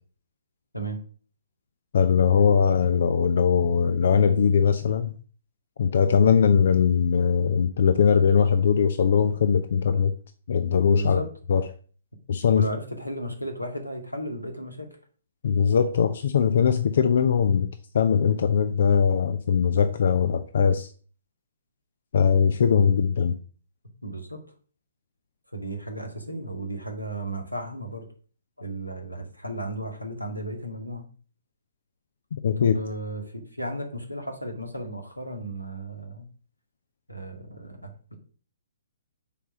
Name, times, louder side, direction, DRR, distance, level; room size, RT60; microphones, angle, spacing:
voice 1, 1.9-5.1 5.8-10.1 10.5-11.2 11.5-11.6 12.3-12.7 15.4-20.9 22.1-23.3 32.3-32.8, left 6 dB, 50° left, 10 dB, 0.6 m, -21 dB
voice 2, 10.9-11.3 12.5-14.9 24.0-24.4 25.5-28.1 28.6-31.1 32.6-36.3 37.1-38.1, right 1 dB, 90° left, 3 dB, 2.1 m, -34 dB
6.9 x 4.8 x 6.2 m, 0.42 s
figure-of-eight pair, 125°, 0 cm